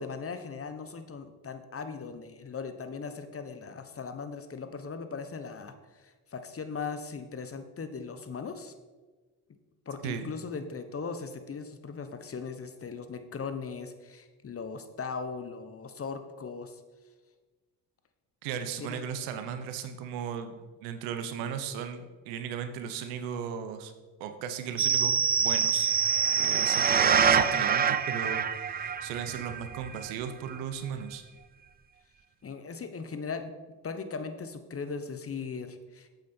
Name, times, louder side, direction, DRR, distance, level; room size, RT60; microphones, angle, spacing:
voice 1, 0.0-8.7 9.9-16.8 18.8-19.0 32.4-33.5 33.8-36.1, left 5 dB, 30° left, 9 dB, 1.0 m, -38 dB
voice 2, 18.4-23.9 24.2-25.1 25.4-25.9 26.4-31.2, right 8 dB, 85° right, 9 dB, 1.0 m, -36 dB
sound 1, 24.8-30.1 30.6-30.7, right 7 dB, 20° right, 0.4 m, -25 dB
8.5 x 7.9 x 4.4 m, 1.3 s
supercardioid pair, 75°, 45 cm